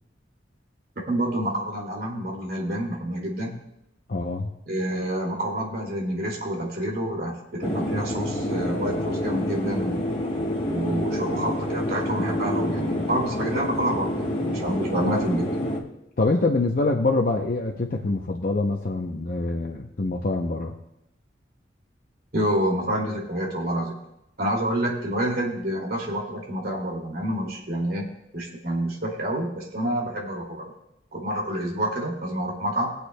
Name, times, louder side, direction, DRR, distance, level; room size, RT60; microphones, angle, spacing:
voice 1, 1.1-3.6 4.7-10.0 10.7-15.4 22.3-24.0 24.4-28.1 28.3-30.7 31.1-32.9, right 1 dB, 55° right, -1 dB, 2.4 m, -28 dB
voice 2, 4.1-4.5 16.2-20.7, left 2 dB, 50° left, 1 dB, 0.6 m, -25 dB
sound 1, 7.6-15.8, left 1 dB, 30° left, 1.1 m, -27 dB
21.0 x 8.2 x 2.2 m, 0.84 s
head